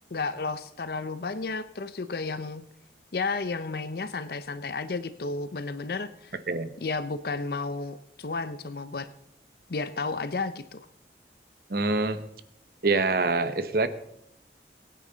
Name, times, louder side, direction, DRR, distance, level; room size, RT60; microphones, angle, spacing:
voice 1, 0.1-2.7 3.1-6.3 6.8-9.1 9.7-10.8, left 3 dB, 55° left, 13 dB, 0.6 m, -32 dB
voice 2, 11.7-12.2 12.8-13.9, right 3 dB, 55° right, 12 dB, 0.9 m, -25 dB
22.0 x 9.3 x 3.9 m, 0.78 s
head